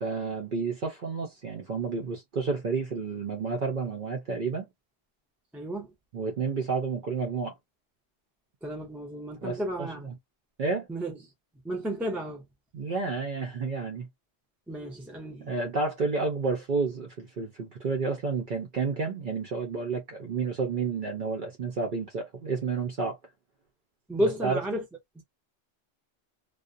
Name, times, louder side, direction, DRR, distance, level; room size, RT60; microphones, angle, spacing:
voice 1, 0.0-4.7 6.1-7.5 9.4-9.9 10.6-10.9 12.7-14.1 15.4-23.2 24.4-24.6, right 4 dB, 55° right, 0.6 m, -30 dB
voice 2, 5.5-5.9 8.6-10.1 10.9-11.2 11.6-12.4 14.7-15.6 24.1-24.8 25.2-25.3, equal, ahead, 0.4 m, -32 dB
2.3 x 2.1 x 2.5 m
omnidirectional pair, 1.3 m